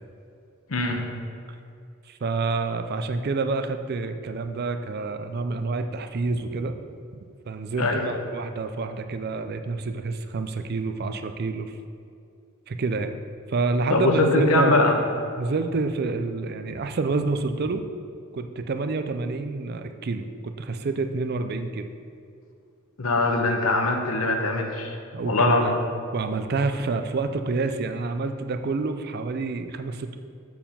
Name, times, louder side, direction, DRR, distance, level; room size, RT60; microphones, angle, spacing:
voice 1, 0.7-1.1 7.8-8.1 13.9-15.0 23.0-25.0 25.2-25.8, left 2 dB, 85° left, 3 dB, 1.0 m, -22 dB
voice 2, 2.1-6.8 7.5-11.8 12.7-13.1 13.5-14.9 15.3-17.8 18.3-21.9 25.1-25.7 26.1-30.2, right 3 dB, 50° right, 8 dB, 0.4 m, -28 dB
7.1 x 4.7 x 5.6 m, 2.5 s
head